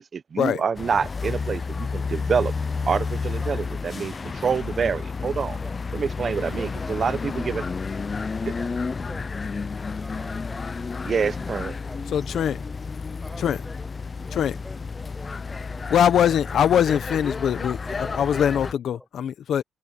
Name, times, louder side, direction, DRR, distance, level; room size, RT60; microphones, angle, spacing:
voice 1, 0.0-2.5 2.9-5.6 5.9-7.6 8.5-8.6 11.0-11.7, right 6 dB, 45° right, 1.0 m, -27 dB
sound 1, 0.7-18.7, left 4 dB, 30° left, 0.5 m, -31 dB
voice 2, 6.2-7.8 8.6-10.8 11.4-12.7 13.2-13.9 14.2-16.6 17.8-18.7 18.9-19.1, equal, ahead, 6.2 m, -46 dB
voice 3, 12.1-12.6 13.4-13.6 14.3-14.5 15.9-19.6, left 9 dB, 65° left, 1.0 m, -22 dB
cardioid pair, 90°, 0 cm